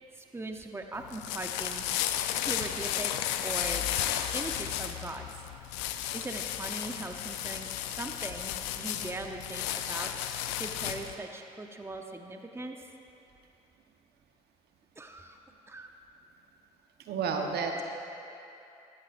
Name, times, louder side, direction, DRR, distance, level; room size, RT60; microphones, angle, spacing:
voice 1, 0.1-2.1 2.5-3.9 4.3-5.3 6.1-10.1 10.6-12.9 15.0-15.4 15.7-15.9, right 2 dB, 15° right, 4 dB, 0.9 m, -40 dB
sound 1, 0.9-11.1, left 11 dB, 80° left, 0.5 m, -33 dB
voice 2, 17.0-17.8, right 5 dB, 65° right, 3 dB, 1.2 m, -31 dB
14.0 x 14.0 x 2.6 m, 2.8 s
hypercardioid pair, 55°, 18 cm